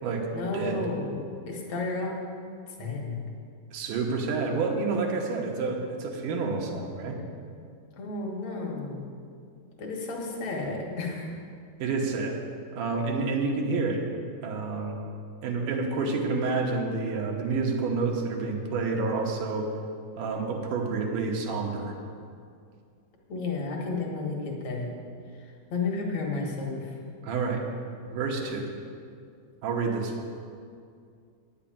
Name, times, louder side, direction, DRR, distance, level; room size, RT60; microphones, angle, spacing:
voice 1, 0.3-2.2 2.8-3.2 8.0-9.1 9.8-11.4 23.3-24.9 25.4-26.9, left 3 dB, 65° left, -1 dB, 2.7 m, -32 dB
voice 2, 3.7-7.2 11.8-12.4 12.7-14.0 14.4-15.0 15.4-19.7 20.2-22.0 27.2-27.6 28.1-28.7 29.6-30.2, right 4 dB, 90° right, 1 dB, 2.8 m, -29 dB
9.5 x 6.6 x 8.7 m, 2.3 s
omnidirectional pair, 3.6 m